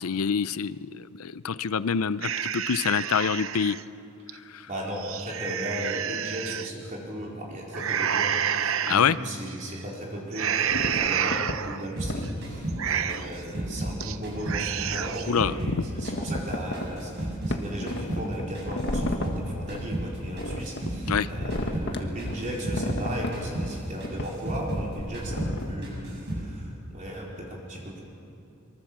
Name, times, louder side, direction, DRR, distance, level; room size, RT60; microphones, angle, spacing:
voice 1, 0.0-3.8 4.3-4.7 8.9-9.2 15.3-15.8 21.1-21.3, left 6 dB, 90° left, 16 dB, 0.6 m, -26 dB
sound 1, 2.2-3.8 4.3-4.4 4.9-6.7 7.7-9.0 9.5-9.8 10.3-11.9 12.2-12.3 12.7-13.4 13.8-14.2 14.4-15.3, right 8 dB, 70° right, 0.8 m, -29 dB
voice 2, 4.7-28.0, equal, 35° right, -3 dB, 4.2 m, -36 dB
sound 2, 10.7-11.6 12.1-12.3 12.7-12.8 13.7-14.1 14.6-15.1 15.4-15.5 15.8-16.9 17.2-17.3 17.5-19.3 19.8-20.9 21.4-22.4 22.7-23.7 24.0-24.3 24.7-25.7, left 1 dB, 55° left, 1.6 m, -33 dB
sound 3, 12.0-14.7 14.9-17.6 17.9-21.2 21.5-21.9 22.2-24.9 25.1-25.6 25.8-26.5, right 1 dB, 55° right, 7.6 m, -33 dB
24.5 x 24.0 x 7.4 m, 2.8 s
head